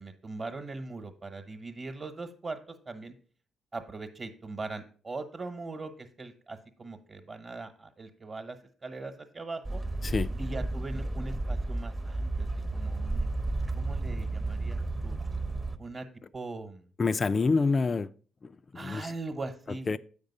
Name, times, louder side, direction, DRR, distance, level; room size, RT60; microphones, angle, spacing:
voice 1, 0.0-3.1 3.7-8.6 8.8-9.8 10.4-13.3 13.7-15.2 15.8-16.1 16.3-16.8 18.7-19.9, right 3 dB, 40° right, 1.1 m, -40 dB
sound 1, 9.7-15.8, right 2 dB, 20° right, 0.8 m, -32 dB
voice 2, 17.0-18.1 18.7-19.1 19.9-20.0, left 4 dB, 35° left, 0.3 m, -26 dB
7.9 x 5.2 x 5.3 m
cardioid pair, 90°, 0 cm